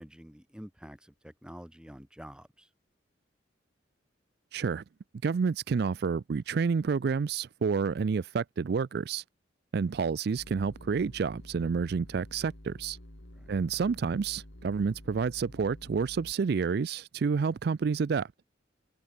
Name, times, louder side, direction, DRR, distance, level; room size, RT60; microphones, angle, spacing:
voice 1, 0.0-2.7 13.3-13.5, equal, 5° right, 1.2 m, -48 dB
voice 2, 4.5-4.8 5.2-9.2 9.7-13.0 13.5-18.3, right 5 dB, 55° right, 0.4 m, -29 dB
sound 1, 10.4-16.3, equal, 75° left, 6.4 m, -49 dB
head